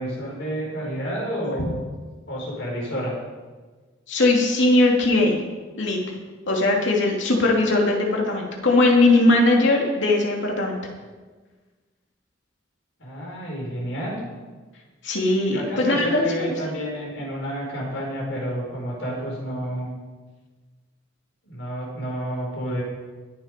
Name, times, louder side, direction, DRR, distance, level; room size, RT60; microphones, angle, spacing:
voice 1, 0.0-1.8 2.3-3.2 13.0-14.2 15.5-19.9 21.4-22.8, equal, 85° left, -3 dB, 5.2 m, -30 dB
voice 2, 4.1-5.4 5.8-6.0 6.5-10.8 15.0-16.5, left 2 dB, 70° left, -1 dB, 2.8 m, -19 dB
21.5 x 7.4 x 5.3 m, 1.3 s
head